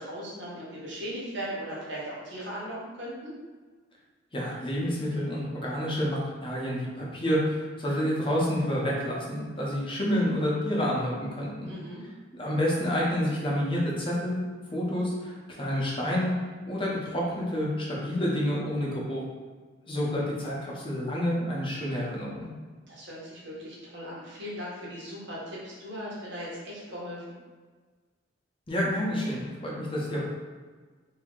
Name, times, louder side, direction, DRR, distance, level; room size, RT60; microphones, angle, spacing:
voice 1, 0.0-3.3 11.7-12.0 22.9-27.4, equal, 60° right, -6 dB, 1.1 m, -38 dB
voice 2, 4.3-11.7 12.3-14.4 14.7-16.3 16.6-19.2 19.9-22.5 28.7-30.2, equal, 25° left, -4 dB, 0.7 m, -29 dB
2.8 x 2.7 x 3.7 m, 1.4 s
head